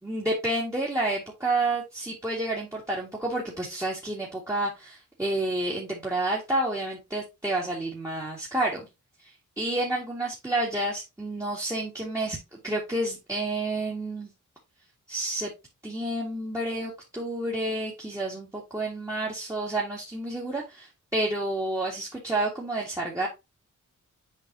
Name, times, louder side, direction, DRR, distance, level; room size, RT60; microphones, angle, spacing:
voice 1, 0.0-8.9 9.2-14.3 15.1-15.5 15.8-23.3, right 2 dB, 10° right, -4 dB, 2.1 m, -30 dB
7.6 x 4.8 x 2.8 m, 0.23 s
cardioid pair, 90°, 31 cm